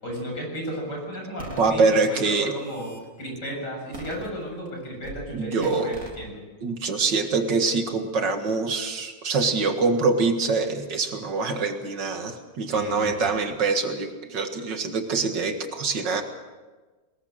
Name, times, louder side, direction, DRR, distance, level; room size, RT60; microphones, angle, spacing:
voice 1, 0.0-1.8 2.1-2.9 3.2-6.4 12.7-13.4, equal, 65° left, 0 dB, 8.1 m, -34 dB
sound 1, 1.4-1.7 2.4-3.0 3.9-4.7 5.0-5.2 5.6-6.2, right 1 dB, 45° right, 4.0 m, -40 dB
voice 2, 1.6-2.5 5.3-5.9 6.6-16.2, right 4 dB, 70° right, 6 dB, 2.4 m, -24 dB
22.0 x 21.0 x 6.6 m, 1.3 s
omnidirectional pair, 2.0 m